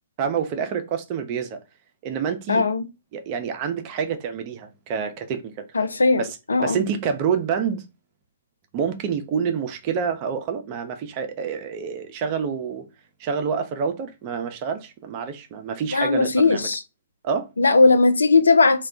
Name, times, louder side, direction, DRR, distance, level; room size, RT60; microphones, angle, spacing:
voice 1, 0.2-1.6 2.0-2.6 3.1-5.5 6.2-6.3 6.6-7.8 8.7-12.8 13.2-16.7 17.2-17.5, right 6 dB, 35° right, 0.5 m, -27 dB
voice 2, 2.5-2.9 5.7-6.8 15.9-16.8 17.6-18.9, left 3 dB, 80° left, 0.3 m, -18 dB
2.2 x 2.1 x 3.6 m
figure-of-eight pair, 125°, 0 cm